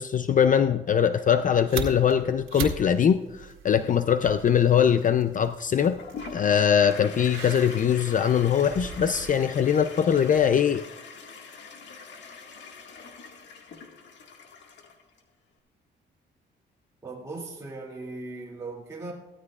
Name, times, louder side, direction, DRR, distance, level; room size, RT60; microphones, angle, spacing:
voice 1, 0.0-6.0 6.3-10.8, left 8 dB, 40° left, 11 dB, 0.5 m, -22 dB
sound 1, 1.3-10.5, right 7 dB, 85° right, 1.7 m, -40 dB
Toilet flush, 6.0-15.2, left 5 dB, 65° left, 1.9 m, -43 dB
voice 2, 17.0-19.1, right 3 dB, 15° right, -6 dB, 2.4 m, -38 dB
16.5 x 13.0 x 2.4 m, 1.1 s
cardioid pair, 90°, 20 cm